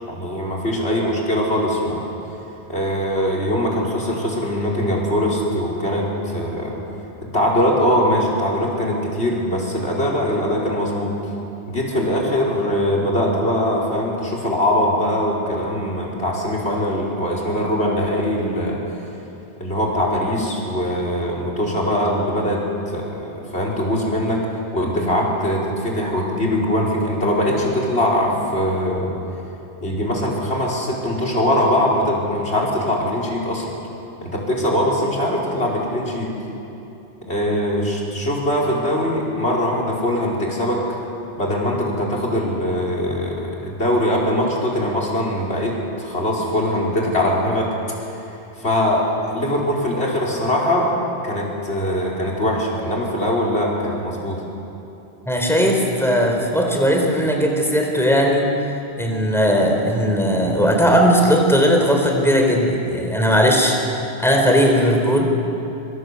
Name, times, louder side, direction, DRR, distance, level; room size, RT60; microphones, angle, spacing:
voice 1, 0.1-2.1 2.7-6.8 7.2-11.1 11.7-18.8 19.6-24.4 24.7-29.2 29.8-33.7 34.2-36.3 37.3-40.8 41.4-45.7 46.0-48.1 48.6-50.9 51.2-54.4, equal, 85° left, -2 dB, 5.3 m, -22 dB
voice 2, 55.3-58.5 59.0-63.8 64.2-65.3, equal, ahead, 1 dB, 4.1 m, -17 dB
25.0 x 25.0 x 8.4 m, 3.0 s
omnidirectional pair, 1.1 m